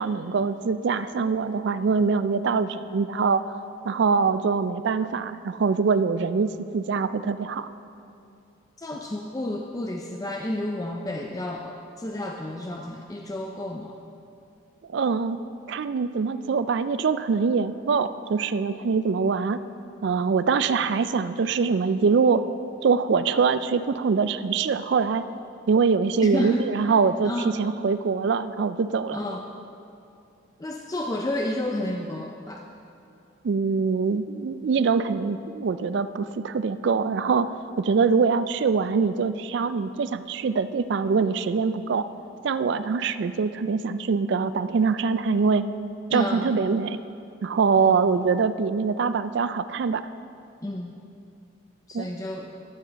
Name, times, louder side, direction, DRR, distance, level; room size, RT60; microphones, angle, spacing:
voice 1, 0.0-3.4 3.8-7.7 14.9-15.4 15.7-19.6 20.0-22.4 22.8-25.2 25.7-29.2 33.4-42.1 42.4-45.6 46.1-47.0 47.4-50.0 51.9-52.1, right 5 dB, 55° right, 13 dB, 0.3 m, -24 dB
voice 2, 8.8-13.9 26.2-27.0 27.2-27.6 29.1-29.5 30.6-32.6 46.1-46.6 47.8-48.0 50.6-50.9 51.9-52.5, left 1 dB, 15° left, 1 dB, 0.4 m, -31 dB
12.5 x 8.5 x 4.0 m, 2.6 s
head